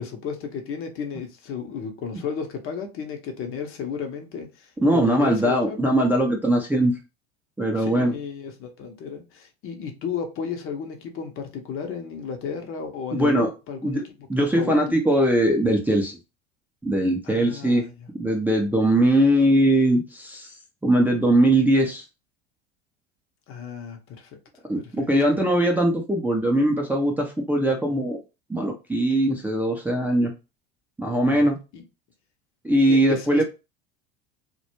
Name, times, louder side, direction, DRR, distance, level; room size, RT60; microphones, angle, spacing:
voice 1, 0.0-5.8 7.8-14.0 14.5-14.9 17.2-18.1 23.5-24.3 24.7-25.1 31.2-31.8 32.9-33.4, left 6 dB, 45° left, 0.7 m, -33 dB
voice 2, 4.8-6.9 7.6-8.1 13.1-13.5 13.8-14.0 14.3-16.2 16.8-17.8 18.2-20.5 20.8-22.0 24.7-28.2 28.5-30.3 31.0-31.6 32.6-33.4, right 1 dB, 5° right, 0.5 m, -21 dB
2.2 x 2.0 x 2.9 m
hypercardioid pair, 80°, 31 cm